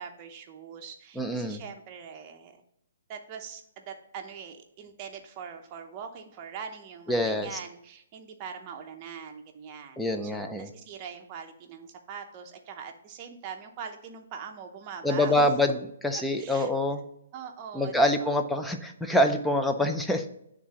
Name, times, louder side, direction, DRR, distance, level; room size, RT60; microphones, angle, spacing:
voice 1, 0.0-2.5 3.1-15.5 16.4-16.7 17.3-18.3 19.8-19.9, right 6 dB, 25° right, 4 dB, 0.7 m, -42 dB
voice 2, 1.2-1.6 7.1-7.6 10.0-10.7 15.0-15.7 16.0-17.0 17.7-20.3, left 1 dB, 5° left, 5 dB, 0.4 m, -25 dB
9.2 x 3.7 x 2.9 m, 0.77 s
hypercardioid pair, 160°, 0 cm